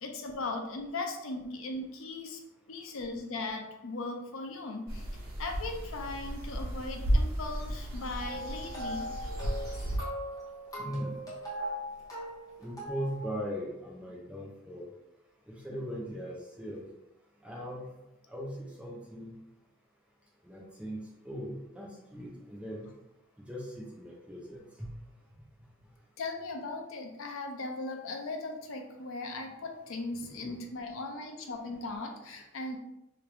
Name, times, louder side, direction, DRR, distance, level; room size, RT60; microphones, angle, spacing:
voice 1, 0.0-2.4 2.7-5.1 5.4-9.1 26.2-32.8, left 2 dB, 70° left, 3 dB, 0.5 m, -38 dB
sound 1, 4.9-10.0, equal, 90° right, 0.9 m, -33 dB
sound 2, 8.2-13.4, equal, 15° left, 0.9 m, -40 dB
voice 2, 10.8-11.2 12.6-14.9 15.5-16.8 17.4-17.9 18.3-19.3 20.4-22.9 23.5-24.9 30.2-30.6, equal, 5° right, -4 dB, 0.6 m, -39 dB
3.0 x 2.6 x 3.3 m, 0.89 s
head